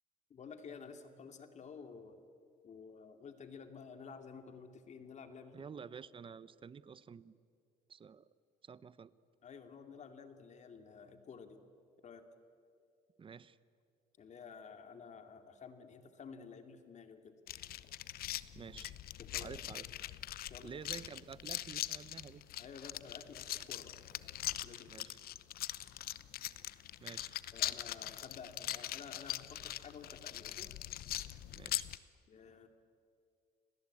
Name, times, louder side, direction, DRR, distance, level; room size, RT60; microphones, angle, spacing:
voice 1, 0.3-2.2 2.6-5.7 9.4-11.6 12.0-12.2 14.2-17.3 19.2-19.5 20.5-20.8 22.6-23.9 24.6-25.1 27.5-30.7 32.3-32.7, left 5 dB, 45° left, 7 dB, 2.5 m, -52 dB
voice 2, 5.5-7.4 7.9-8.3 8.6-9.1 13.2-13.6 18.5-18.9 19.4-19.9 20.6-22.4 24.9-25.2 27.0-27.4 31.5-31.9, right 6 dB, 30° right, 18 dB, 0.8 m, -50 dB
sound 1, 17.5-32.0, left 13 dB, 65° left, 0.8 m, -42 dB
30.0 x 19.5 x 8.6 m, 2.4 s
cardioid pair, 110°, 17 cm